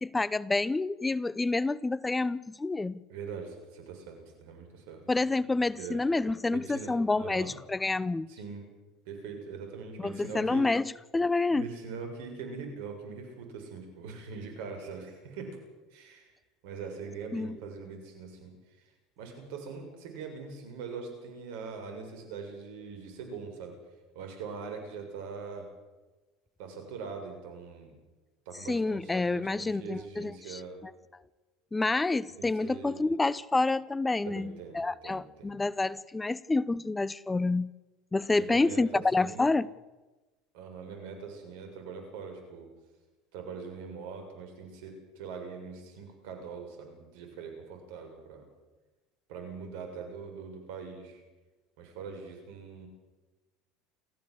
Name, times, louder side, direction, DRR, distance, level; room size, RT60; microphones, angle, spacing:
voice 1, 0.0-3.0 5.1-8.3 10.0-11.7 17.3-17.6 28.6-30.9 31.7-37.7 38.1-39.7, left 3 dB, 15° left, 0.7 m, -28 dB
voice 2, 3.1-5.0 5.8-6.0 6.5-7.5 8.3-8.6 9.1-10.6 11.5-15.6 15.9-16.3 16.6-18.5 19.2-23.8 24.2-25.7 26.6-27.9 28.5-30.8 32.4-33.0 34.3-35.6 38.3-39.5 40.5-42.7 43.3-48.5 49.3-51.2 51.8-52.9, right 5 dB, 70° right, 7.1 m, -42 dB
28.5 x 15.0 x 8.1 m
hypercardioid pair, 80°, 0 cm